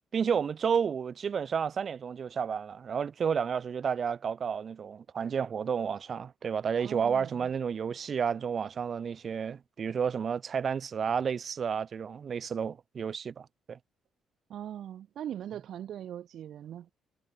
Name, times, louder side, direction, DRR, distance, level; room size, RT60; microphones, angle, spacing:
voice 1, 0.1-13.8, right 7 dB, 50° right, 7.1 m, -31 dB
voice 2, 6.8-7.5 14.5-16.9, right 10 dB, 70° right, 3.0 m, -40 dB
cardioid pair, 90°, 0 cm